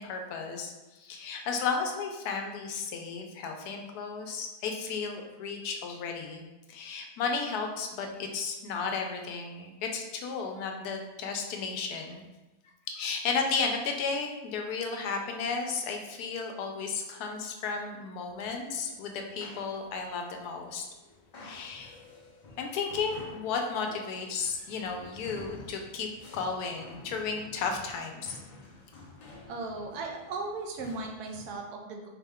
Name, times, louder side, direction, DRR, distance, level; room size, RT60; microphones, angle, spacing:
voice 1, 0.0-6.4 6.7-12.2 13.0-20.8 21.4-22.0 22.6-26.1 26.3-28.4, left 5 dB, 85° left, 3 dB, 1.1 m, -34 dB
sound 1, 18.8-31.6, left 2 dB, 65° left, 0.4 m, -50 dB
voice 2, 29.5-32.1, right 3 dB, 90° right, 2 dB, 1.2 m, -37 dB
4.2 x 2.2 x 3.5 m, 1.1 s
omnidirectional pair, 1.6 m